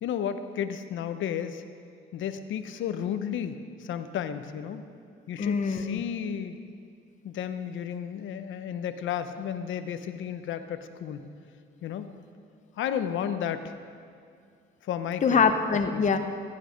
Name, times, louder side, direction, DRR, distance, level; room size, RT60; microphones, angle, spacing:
voice 1, 0.0-1.6 2.1-4.9 5.3-6.6 7.2-11.3 11.8-12.1 12.8-13.7 14.8-15.4 15.9-16.1, left 8 dB, 75° left, 10 dB, 0.9 m, -33 dB
voice 2, 5.4-6.0 15.2-16.2, left 5 dB, 40° left, 7 dB, 0.9 m, -24 dB
15.5 x 11.5 x 5.2 m, 2.3 s
cardioid pair, 90°, 20 cm